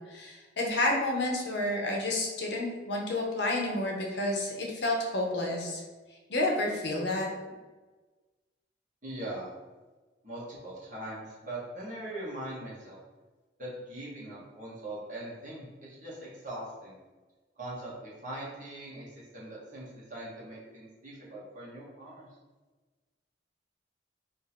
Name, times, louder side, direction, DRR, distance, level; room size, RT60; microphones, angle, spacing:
voice 1, 0.1-5.8 6.3-7.3, left 1 dB, 65° left, 0 dB, 0.7 m, -30 dB
voice 2, 9.0-9.5 10.2-13.0 13.6-17.0 17.6-22.3, right 1 dB, 40° right, -7 dB, 1.2 m, -41 dB
2.9 x 2.8 x 4.2 m, 1.3 s
head